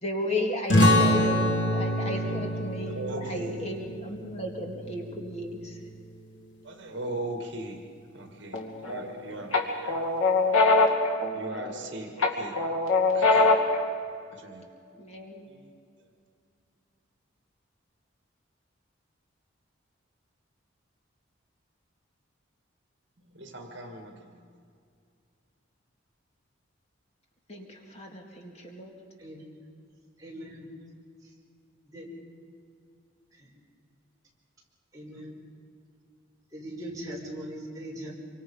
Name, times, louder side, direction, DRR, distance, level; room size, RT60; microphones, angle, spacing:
voice 1, 0.0-5.8 15.0-15.5 27.5-28.9, left 1 dB, 30° left, 1 dB, 2.2 m, -35 dB
sound 1, 0.7-5.9, left 1 dB, 65° left, 2.5 m, -26 dB
voice 2, 2.9-3.6 6.6-7.8 8.1-10.2 11.3-12.6 13.1-13.5 14.3-14.6 15.4-15.7 23.3-24.3, right 2 dB, 60° right, 3 dB, 2.1 m, -39 dB
sound 2, 8.5-9.1 9.5-11.8 12.2-13.8, left 3 dB, 85° left, 2.5 m, -23 dB
voice 3, 30.2-30.7 31.2-31.3 31.8-32.1 33.3-33.5 34.9-35.4 36.5-38.1, right 1 dB, 15° right, -4 dB, 5.3 m, -40 dB
26.5 x 24.5 x 5.6 m, 2.3 s
head